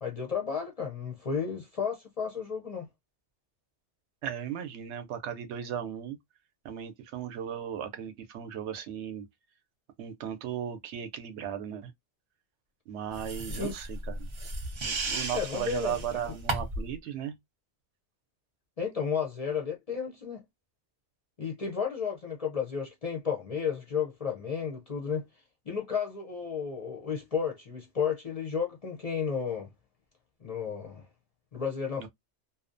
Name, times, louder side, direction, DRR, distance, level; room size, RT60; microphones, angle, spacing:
voice 1, 0.0-2.9 13.5-13.7 15.3-15.9 18.8-20.4 21.4-25.2 25.7-29.7 30.4-31.0 31.5-32.1, left 6 dB, 45° left, 0.5 m, -32 dB
voice 2, 4.2-6.2 6.6-9.3 10.0-11.9 12.9-14.3 14.8-17.4 32.0-32.1, right 9 dB, 80° right, 0.9 m, -36 dB
sound 1, 13.1-16.9, right 2 dB, 50° right, 0.3 m, -35 dB
2.6 x 2.1 x 2.5 m
omnidirectional pair, 1.2 m